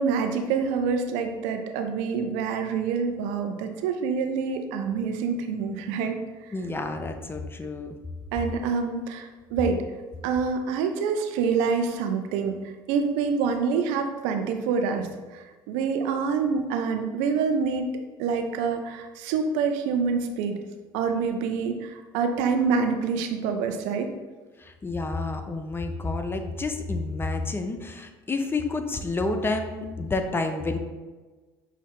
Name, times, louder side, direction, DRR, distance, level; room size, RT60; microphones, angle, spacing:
voice 1, 0.0-6.2 8.3-9.8 10.2-12.6 12.9-15.1 15.3-17.9 18.2-20.6 20.9-24.1, right 5 dB, 75° right, 5 dB, 0.5 m, -26 dB
voice 2, 6.5-8.0 24.6-30.8, left 3 dB, 20° left, 6 dB, 0.5 m, -29 dB
5.8 x 2.7 x 3.1 m, 1.3 s
hypercardioid pair, 75°, 12 cm